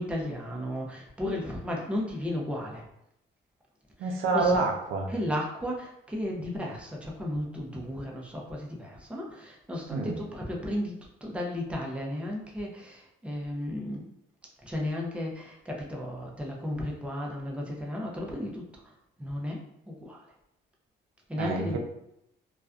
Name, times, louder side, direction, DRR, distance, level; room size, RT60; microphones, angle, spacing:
voice 1, 0.0-2.9 4.0-4.6 5.1-11.0 11.2-14.1 14.6-18.9 19.2-20.2 21.3-21.8, left 1 dB, 5° right, -2 dB, 0.5 m, -34 dB
voice 2, 4.0-5.1 9.9-10.2 21.4-21.8, right 3 dB, 90° right, 1 dB, 0.5 m, -27 dB
2.4 x 2.2 x 2.3 m, 0.78 s
cardioid pair, 90°, 20 cm